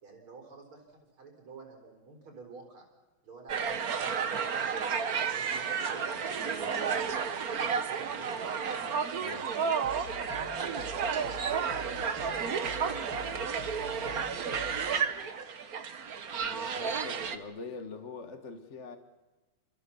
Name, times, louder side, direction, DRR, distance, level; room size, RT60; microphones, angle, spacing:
voice 1, 0.0-2.9 3.2-8.4 10.3-11.9 12.3-15.3 16.3-17.4, right 4 dB, 70° right, 2 dB, 4.9 m, -50 dB
sound 1, 3.5-17.4, right 6 dB, 50° right, 1.6 m, -32 dB
voice 2, 9.1-9.5 16.4-19.0, left 4 dB, 35° left, 8 dB, 1.7 m, -44 dB
sound 2, 9.8-14.8, left 3 dB, 55° left, 2.0 m, -47 dB
29.5 x 26.0 x 7.1 m, 1.2 s
omnidirectional pair, 2.4 m